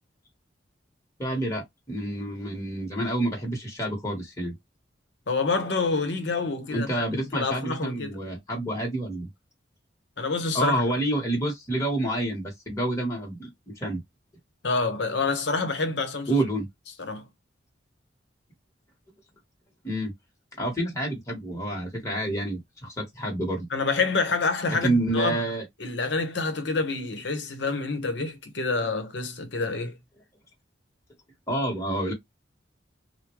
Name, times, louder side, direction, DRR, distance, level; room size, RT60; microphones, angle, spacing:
voice 1, 1.2-4.5 6.7-9.3 10.5-14.0 16.3-16.7 19.8-20.1 20.6-23.7 24.8-25.6 31.5-32.1, right 1 dB, 15° left, 1.1 m, -28 dB
voice 2, 5.3-8.2 10.2-10.8 14.6-16.4 17.0-17.3 23.7-25.4 25.8-30.0, left 4 dB, 70° left, 0.9 m, -27 dB
3.5 x 2.2 x 3.0 m
head